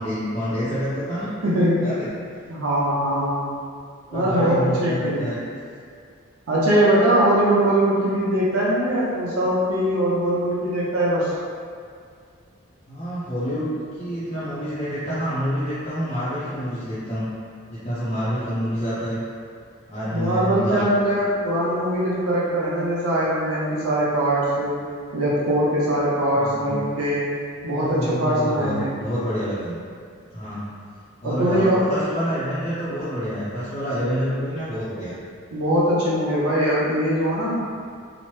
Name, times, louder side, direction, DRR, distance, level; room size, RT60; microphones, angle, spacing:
voice 1, 0.0-1.3 1.8-2.2 4.1-5.4 12.9-17.3 17.7-19.2 19.9-20.9 26.3-26.8 27.7-29.8 30.3-30.7 31.2-35.1, equal, 30° left, -12 dB, 0.5 m, -27 dB
voice 2, 1.4-1.9 2.5-3.5 4.1-5.3 6.5-11.3 20.1-24.8 25.1-27.2 27.6-29.0 31.2-31.9 35.5-37.6, right 1 dB, 90° right, -7 dB, 0.6 m, -21 dB
2.9 x 2.0 x 3.1 m, 2.2 s
head